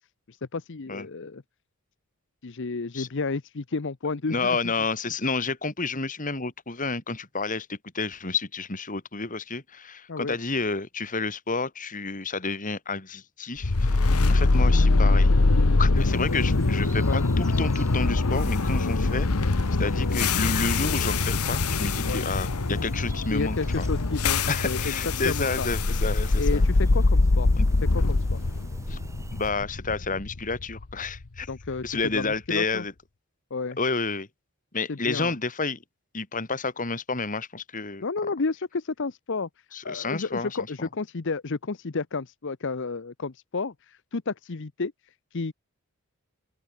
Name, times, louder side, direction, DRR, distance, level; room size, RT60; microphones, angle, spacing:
voice 1, 0.3-1.4 2.4-4.6 10.1-10.4 14.1-14.3 16.6-16.7 17.0-17.2 22.1-22.2 23.3-24.9 25.2-25.7 26.4-27.5 27.9-28.4 31.5-32.8 33.5-33.8 34.9-35.3 38.0-39.5 39.8-45.5, left 4 dB, 55° left, 0.8 m, -31 dB
voice 2, 4.3-15.3 15.8-23.9 24.5-26.6 27.6-27.7 28.9-29.0 29.3-31.5 31.8-32.9 33.8-34.3 34.7-35.8 36.1-38.0 39.7-40.9, left 4 dB, 35° left, 2.4 m, -30 dB
sound 1, 13.6-31.7, left 3 dB, 80° left, 1.1 m, -23 dB
sound 2, 15.9-29.5, right 1 dB, 15° right, 3.1 m, -46 dB
open air
head